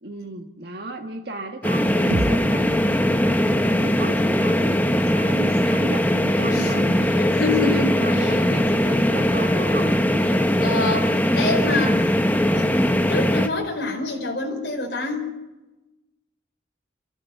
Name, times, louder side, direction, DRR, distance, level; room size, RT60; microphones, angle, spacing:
voice 1, 0.0-10.6 11.0-11.1, right 2 dB, 55° right, 3 dB, 1.6 m, -35 dB
sound 1, 1.6-13.5, equal, 10° left, 1.0 m, -20 dB
sound 2, 2.1-6.1, right 2 dB, 85° right, 0.9 m, -34 dB
voice 2, 7.0-8.5 10.3-12.1 12.5-15.4, left 3 dB, 60° left, 1 dB, 4.8 m, -27 dB
28.5 x 14.5 x 8.2 m, 1.1 s
head